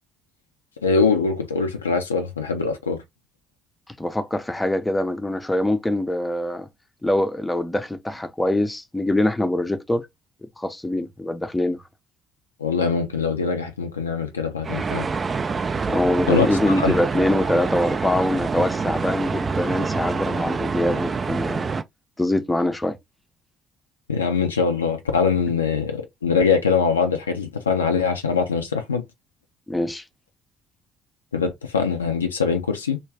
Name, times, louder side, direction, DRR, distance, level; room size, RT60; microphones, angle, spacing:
voice 1, 0.8-3.0 12.6-15.1 16.3-16.5 16.8-16.9 24.1-29.0 31.3-33.0, left 5 dB, 85° left, 0.3 m, -22 dB
voice 2, 4.0-6.7 7.0-10.1 10.6-11.8 15.9-21.7 22.2-23.0 29.7-30.0, left 1 dB, 10° left, 0.5 m, -23 dB
sound 1, 14.6-21.8, right 4 dB, 35° right, 0.3 m, -26 dB
2.3 x 2.2 x 3.3 m
figure-of-eight pair, 50°, 0 cm